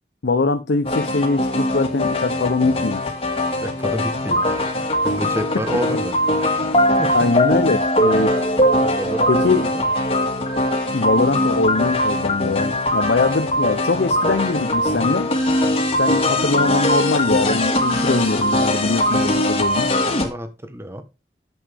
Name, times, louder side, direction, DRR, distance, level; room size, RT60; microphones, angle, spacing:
voice 1, 0.2-3.1 7.1-8.3 9.3-9.7 10.9-15.3 15.9-19.9, left 3 dB, 70° left, 0.7 m, -22 dB
sound 1, 0.9-20.3, left 1 dB, 35° left, 1.9 m, -21 dB
voice 2, 3.6-4.7 5.0-7.1 8.8-9.9 20.2-21.0, equal, 15° right, 1.1 m, -30 dB
10.0 x 7.2 x 3.5 m
head